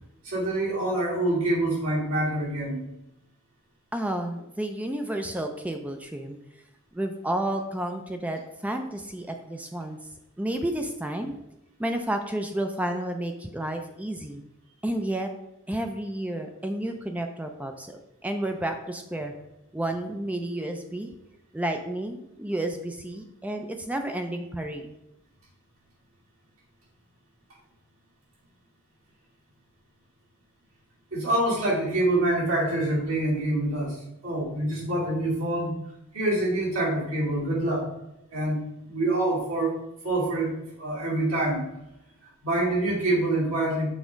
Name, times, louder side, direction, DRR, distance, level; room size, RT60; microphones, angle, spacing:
voice 1, 0.2-2.8 31.1-35.7 36.1-37.9 38.3-38.6 38.9-39.8 40.0-41.6 42.4-43.9, right 1 dB, 70° right, -4 dB, 2.3 m, -26 dB
voice 2, 3.9-6.4 6.9-10.0 10.4-11.4 11.8-14.4 14.8-15.3 15.7-19.3 19.7-21.1 21.5-24.9, right 1 dB, 5° right, 5 dB, 0.3 m, -31 dB
6.3 x 3.5 x 5.0 m, 0.88 s
head